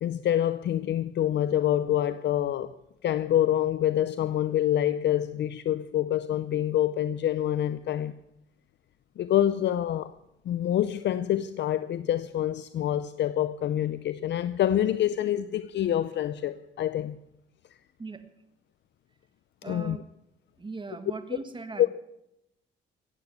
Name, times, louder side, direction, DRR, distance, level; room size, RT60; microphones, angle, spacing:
voice 1, 0.0-2.7 3.0-8.1 9.2-10.1 10.5-17.2 19.7-20.0 21.8-21.9, left 11 dB, 65° left, 0.6 m, -26 dB
voice 2, 19.6-20.1 20.6-21.9, right 4 dB, 25° right, 1.7 m, -39 dB
15.5 x 9.3 x 8.2 m
cardioid pair, 90°, 20 cm